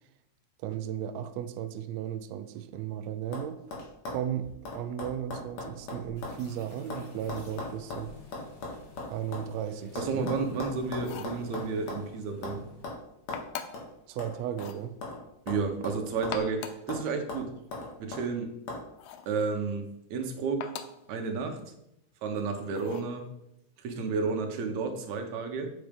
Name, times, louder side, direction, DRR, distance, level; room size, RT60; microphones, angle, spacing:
voice 1, 0.6-3.6 4.1-8.1 9.1-10.3 14.1-15.0, right 10 dB, 85° right, 10 dB, 1.5 m, -35 dB
sound 1, 2.6-2.9 3.3-3.5 3.7-6.4 6.7-9.5 10.0-12.1 12.4-12.6 12.8-13.0 13.3-13.4 13.7-13.9 14.2-15.2 15.5-16.5 16.9-17.0 17.3-18.2 18.7-18.8, left 2 dB, 60° left, 2.9 m, -39 dB
sound 2, 6.2-12.8, left 5 dB, 40° left, 1.9 m, -52 dB
voice 2, 10.0-12.6 15.5-17.5 18.0-18.5 19.3-20.7 21.1-21.6 22.2-23.3 23.8-25.7, right 4 dB, 70° right, 5 dB, 2.3 m, -31 dB
sound 3, 10.9-11.4 13.3-13.9 14.5-14.8 16.1-16.9 19.0-19.3 20.6-21.0 22.7-23.1, left 9 dB, 85° left, 1.4 m, -41 dB
7.8 x 6.1 x 5.2 m, 0.82 s
omnidirectional pair, 3.6 m